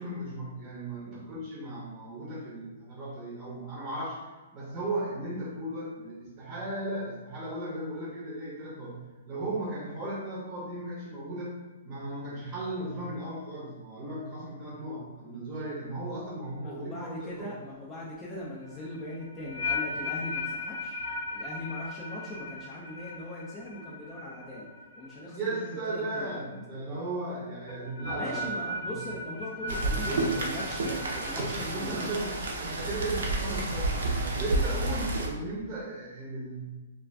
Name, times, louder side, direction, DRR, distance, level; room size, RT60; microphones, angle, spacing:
voice 1, 0.0-9.0 9.3-11.6 11.8-17.5 25.3-29.0 30.0-30.2 31.3-36.7, right 1 dB, 20° right, -7 dB, 0.7 m, -36 dB
voice 2, 16.6-21.0 21.3-24.7 25.0-26.4 28.2-32.3, left 1 dB, 15° left, -6 dB, 0.4 m, -40 dB
sound 1, 18.6-25.8 26.0-26.4 27.7-32.3, left 2 dB, 65° left, 0.6 m, -37 dB
Rain, 29.7-35.3, right 2 dB, 80° right, 0.6 m, -30 dB
2.4 x 2.4 x 3.2 m, 1.2 s
hypercardioid pair, 170°, 0 cm